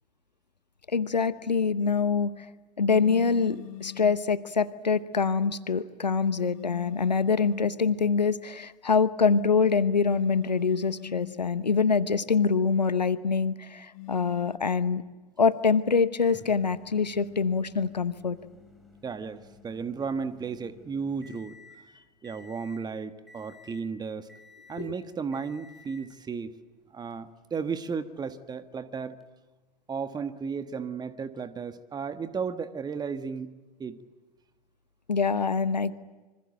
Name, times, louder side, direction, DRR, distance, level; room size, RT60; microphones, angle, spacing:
voice 1, 0.9-2.5 2.8-15.0 15.4-18.4 24.8-24.9 35.1-35.9, left 5 dB, 85° left, 16 dB, 0.9 m, -25 dB
sound 1, 2.9-4.3 6.4-7.8 9.9-11.5 13.9-14.6, left 17 dB, 55° left, 1.1 m, -42 dB
Microwave oven, 16.2-21.8 22.2-22.9 23.3-23.9 24.3-24.9 25.3-26.1 27.1-27.2 29.2-29.3, left 3 dB, ahead, 7.1 m, -53 dB
voice 2, 19.0-21.5 22.2-24.3 24.7-26.5 26.9-29.2 29.9-33.5 33.8-34.0, right 5 dB, 20° right, 11 dB, 1.4 m, -34 dB
26.0 x 25.5 x 7.7 m, 1.3 s
figure-of-eight pair, 85°, 21 cm